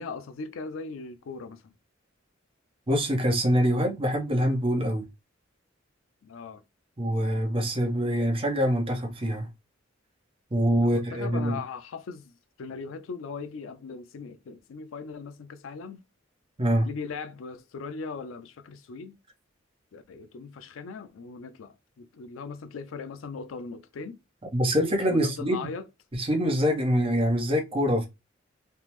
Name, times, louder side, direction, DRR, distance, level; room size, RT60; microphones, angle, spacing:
voice 1, 0.0-1.7 6.2-6.6 10.8-16.0 16.8-19.2 19.9-24.2 25.1-25.9, left 4 dB, 90° left, 0.4 m, -39 dB
voice 2, 2.9-5.1 7.0-9.5 10.5-11.6 16.6-16.9 24.5-25.7 26.2-28.1, equal, 30° right, 0.8 m, -25 dB
3.3 x 2.0 x 2.9 m
head